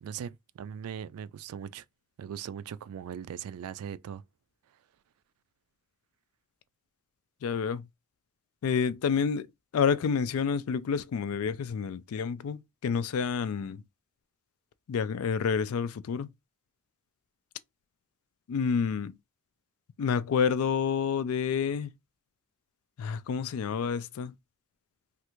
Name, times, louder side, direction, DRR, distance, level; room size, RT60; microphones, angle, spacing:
voice 1, 0.0-1.8 2.2-4.2, right 8 dB, 80° right, 0.3 m, -39 dB
voice 2, 7.4-7.9 8.6-9.5 9.7-13.8 14.9-16.3 18.5-19.1 20.0-21.9 23.0-24.3, left 6 dB, 70° left, 0.3 m, -29 dB
3.2 x 2.4 x 3.0 m
head